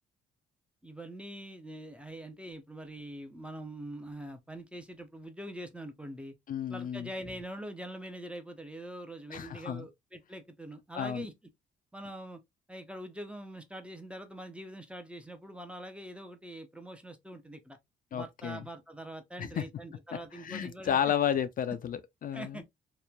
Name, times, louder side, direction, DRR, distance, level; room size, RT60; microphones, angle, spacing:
voice 1, 0.8-6.3 6.7-11.3 11.9-12.4 12.7-17.8 18.1-21.1 22.3-22.6, right 1 dB, 5° right, 0.5 m, -44 dB
voice 2, 6.5-7.1 9.3-9.9 10.9-11.3 18.1-18.6 19.4-19.6 20.3-22.6, left 9 dB, 50° left, 0.4 m, -32 dB
2.9 x 2.1 x 2.2 m
cardioid pair, 75°, 19 cm